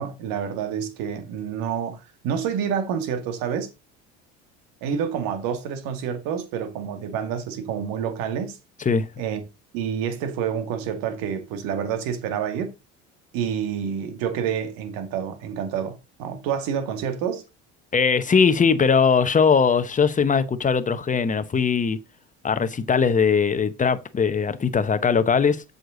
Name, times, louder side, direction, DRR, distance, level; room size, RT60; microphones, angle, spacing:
voice 1, 0.0-3.7 4.8-8.6 9.2-9.4 9.7-12.7 13.3-17.4, right 8 dB, 70° right, 2.2 m, -28 dB
voice 2, 17.9-22.0 22.4-25.6, left 6 dB, 20° left, 1.0 m, -20 dB
7.7 x 6.8 x 3.9 m
supercardioid pair, 90°, 35 cm